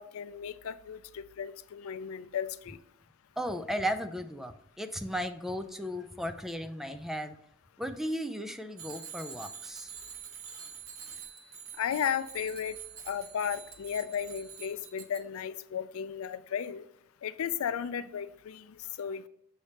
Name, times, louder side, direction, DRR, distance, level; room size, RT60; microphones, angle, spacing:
voice 1, 0.0-2.8 11.8-12.8 13.1-16.8 17.2-19.3, left 8 dB, 90° left, 14 dB, 0.4 m, -35 dB
voice 2, 3.4-7.4 7.8-9.9, equal, ahead, 9 dB, 0.4 m, -35 dB
Bicycle bell, 8.8-15.2, right 7 dB, 80° right, 0.9 m, -46 dB
7.1 x 3.3 x 4.2 m, 0.74 s
head